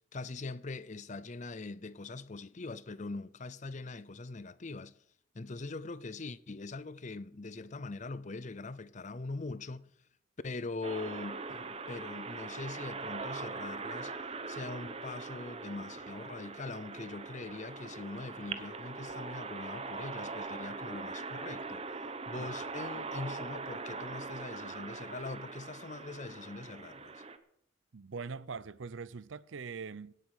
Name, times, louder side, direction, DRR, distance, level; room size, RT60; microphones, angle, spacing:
voice 1, 0.1-4.9 5.3-9.9 10.4-14.1 14.5-21.9 22.3-27.2, left 3 dB, 35° left, 0.6 m, -42 dB
sound 1, 10.8-27.4, right 4 dB, 30° right, 1.0 m, -41 dB
voice 2, 27.9-30.1, right 5 dB, 70° right, 0.6 m, -42 dB
17.0 x 8.6 x 6.3 m
head